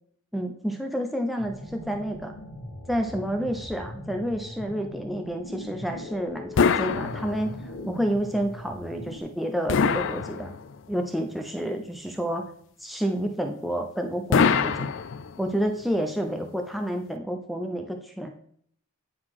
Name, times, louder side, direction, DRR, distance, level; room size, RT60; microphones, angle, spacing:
voice 1, 0.3-2.3 2.9-10.5 10.9-12.4 12.8-14.9 15.4-18.3, equal, ahead, 3 dB, 0.5 m, -29 dB
sound 1, 1.4-9.2, left 1 dB, 85° left, 1.3 m, -41 dB
sound 2, 6.6-7.8 9.7-10.9 14.3-15.6, left 6 dB, 60° left, 0.4 m, -24 dB
9.5 x 3.9 x 4.7 m, 0.65 s
head